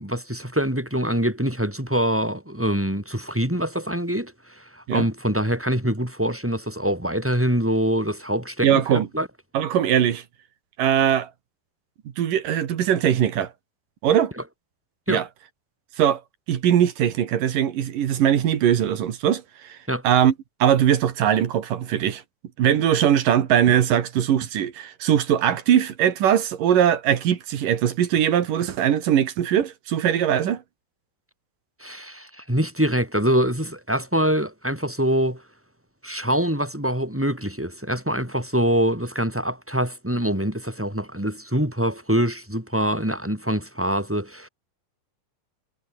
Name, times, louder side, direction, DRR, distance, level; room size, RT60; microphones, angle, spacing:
voice 1, 0.0-9.3 15.1-15.2 19.9-20.0 31.8-35.4 36.0-44.5, equal, 5° right, 6.4 m, -24 dB
voice 2, 8.6-9.1 9.5-10.2 10.8-11.3 12.2-13.5 14.0-14.3 15.1-15.3 16.0-16.2 16.5-19.8 20.0-20.3 20.6-22.2 22.6-30.6, right 10 dB, 70° right, 3.4 m, -20 dB
omnidirectional pair, 4.1 m